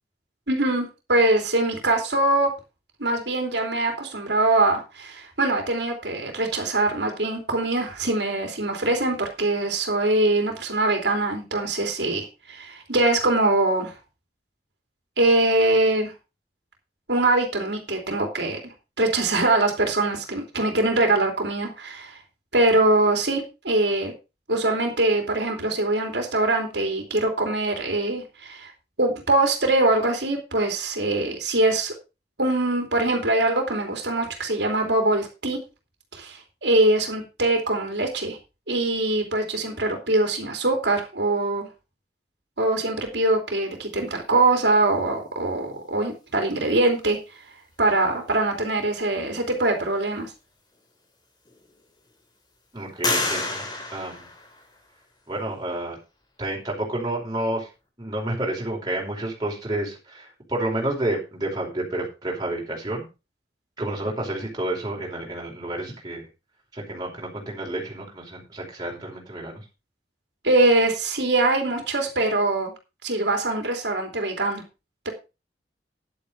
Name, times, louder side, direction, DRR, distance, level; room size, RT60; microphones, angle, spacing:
voice 1, 0.5-2.5 3.0-13.9 15.2-16.1 17.1-18.6 19.0-22.2 22.5-24.1 24.5-28.7 29.0-31.9 32.4-35.6 36.1-38.4 38.7-41.7 42.6-47.2 47.8-50.3 70.4-72.7 73.0-74.6 75.0-75.1, right 2 dB, 75° right, 3 dB, 3.1 m, -23 dB
sound 1, 50.8-50.9 51.4-52.1 53.0-55.0, left 2 dB, 25° left, 2.7 m, -29 dB
voice 2, 52.7-53.6 53.9-54.3 55.3-56.0 56.4-57.7 58.0-63.0 63.8-66.3 66.7-69.6, right 1 dB, 25° right, -2 dB, 4.8 m, -30 dB
11.0 x 8.6 x 5.0 m, 0.29 s
head